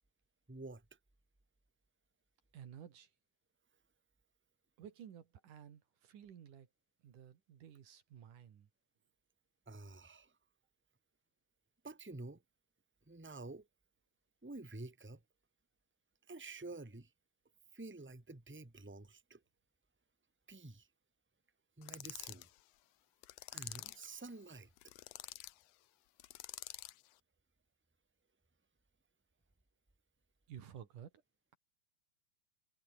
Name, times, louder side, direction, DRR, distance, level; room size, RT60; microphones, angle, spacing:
voice 1, 0.5-0.8 9.7-10.3 11.8-12.4 13.1-13.7 14.4-15.2 16.3-17.1 17.7-19.4 20.5-20.9 21.8-22.5 23.5-24.7, right 2 dB, 10° right, 0.6 m, -49 dB
voice 2, 2.5-3.1 4.8-6.7 7.0-8.7 30.5-31.1, right 9 dB, 80° right, 3.7 m, -53 dB
sound 1, 21.8-22.5 23.2-24.1 24.8-25.5 26.2-27.0, left 16 dB, 75° left, 1.5 m, -48 dB
omnidirectional pair, 3.6 m